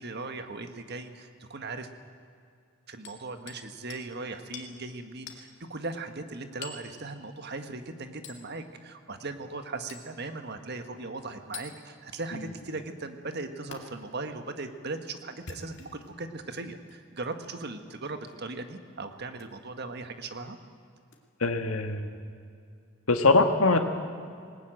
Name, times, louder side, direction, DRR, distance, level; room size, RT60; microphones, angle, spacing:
voice 1, 0.0-1.9 2.9-20.6, right 3 dB, 50° right, 8 dB, 1.5 m, -38 dB
Hammer, 3.0-3.6 3.9-4.1 4.5-4.7 5.3-5.5 6.6-6.9 8.2-8.4 9.9-10.1 11.5-11.7 13.7-13.8 15.3-16.1 16.8-17.0 18.3-18.5 19.3-19.5 21.1-21.2, left 5 dB, 55° left, 2.4 m, -44 dB
voice 2, 21.4-22.1 23.1-23.8, left 3 dB, 75° left, 6 dB, 1.6 m, -22 dB
20.0 x 20.0 x 9.1 m, 2.4 s
head